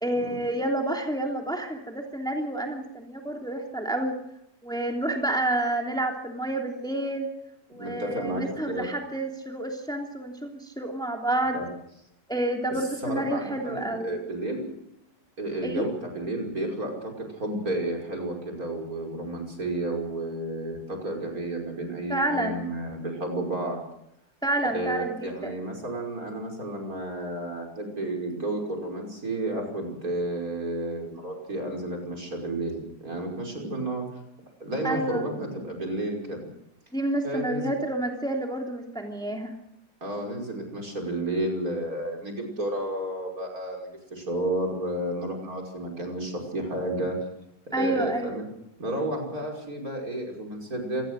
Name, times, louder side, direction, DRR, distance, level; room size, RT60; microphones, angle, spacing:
voice 1, 0.0-4.2 4.6-7.3 7.7-11.6 12.3-14.2 15.6-15.9 22.1-22.6 24.4-25.5 34.8-35.3 36.9-39.6 47.7-48.4, right 1 dB, ahead, 2 dB, 3.0 m, -29 dB
voice 2, 7.8-8.9 11.5-11.7 13.0-14.7 15.4-23.8 24.6-34.1 34.6-36.4 37.2-37.7 40.0-47.2 47.7-48.4 48.8-51.1, right 1 dB, 60° right, 1 dB, 6.0 m, -31 dB
27.0 x 20.0 x 6.5 m, 0.79 s
omnidirectional pair, 1.7 m